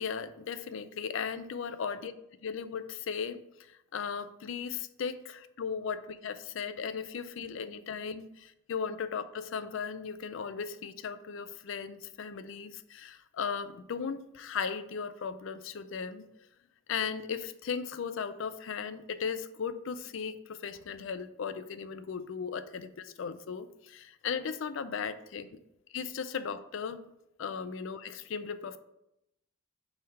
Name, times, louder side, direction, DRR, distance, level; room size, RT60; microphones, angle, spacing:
voice 1, 0.0-2.1 2.4-16.3 16.9-25.6 25.9-27.0 27.4-28.8, left 6 dB, 65° left, 12 dB, 0.4 m, -37 dB
5.5 x 3.4 x 5.4 m, 0.83 s
head